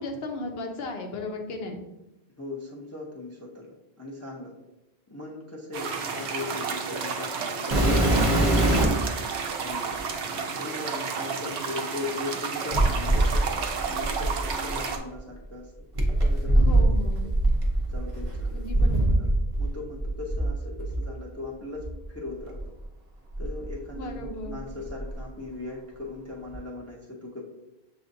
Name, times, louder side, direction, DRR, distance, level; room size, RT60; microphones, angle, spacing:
voice 1, 0.0-1.8 16.5-17.3 18.5-19.2 23.9-24.6, left 2 dB, 70° left, 4 dB, 0.9 m, -35 dB
voice 2, 2.4-4.5 5.1-9.0 9.3-9.9 10.2-15.7 16.2-16.7 17.2-17.3 17.9-18.8 19.2-19.3 19.6-22.6 23.4-27.4, left 2 dB, 20° left, -3 dB, 0.4 m, -39 dB
sound 1, 5.7-15.0, right 5 dB, 85° right, 0.9 m, -31 dB
sound 2, 7.7-9.1 10.0-10.1 12.7-14.8 16.0-19.7 20.0-21.0 21.8-21.9 22.5-22.6 23.3-24.4 24.7-25.2 26.5-26.6, right 1 dB, 35° right, 0.6 m, -23 dB
6.4 x 2.5 x 2.6 m, 0.94 s
omnidirectional pair, 1.1 m